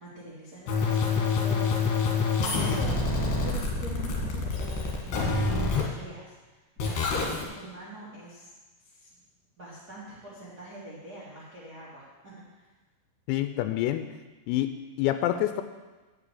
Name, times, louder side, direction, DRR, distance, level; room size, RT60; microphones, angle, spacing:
voice 1, 0.0-2.1 2.4-6.3 6.8-8.5 8.8-9.1 9.6-12.6, right 2 dB, 85° right, -8 dB, 0.8 m, -44 dB
sound 1, 0.7-5.8 6.8-7.4, left 4 dB, 60° left, 2.9 m, -27 dB
voice 2, 13.3-14.1 14.5-15.6, left 13 dB, 90° left, 9 dB, 3.3 m, -27 dB
9.4 x 6.1 x 8.2 m, 1.2 s
omnidirectional pair, 5.9 m